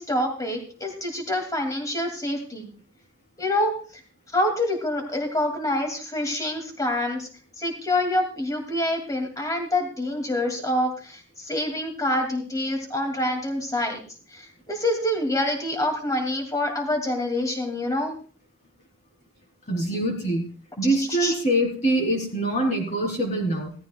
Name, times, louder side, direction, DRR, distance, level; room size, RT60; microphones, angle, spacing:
voice 1, 0.0-2.7 3.4-3.7 4.3-7.3 7.6-14.0 14.3-18.2 21.1-21.3, left 1 dB, 15° left, 3 dB, 2.2 m, -26 dB
voice 2, 19.7-20.4 20.8-23.7, right 1 dB, 35° left, -1 dB, 3.2 m, -24 dB
17.0 x 13.5 x 2.2 m, 0.41 s
head